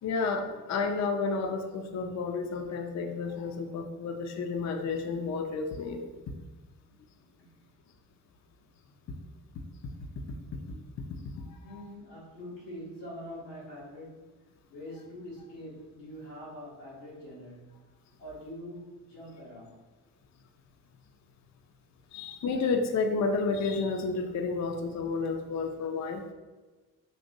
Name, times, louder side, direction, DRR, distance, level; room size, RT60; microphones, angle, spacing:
voice 1, 0.0-6.1 9.1-9.2 9.8-9.9 10.5-11.6 22.1-26.2, left 4 dB, 40° left, 4 dB, 0.5 m, -31 dB
voice 2, 6.9-7.6 11.6-14.3 14.7-17.8 18.2-19.8 22.1-22.3, equal, 90° left, -7 dB, 1.3 m, -45 dB
4.1 x 2.8 x 2.6 m, 1.3 s
hypercardioid pair, 40°, 46 cm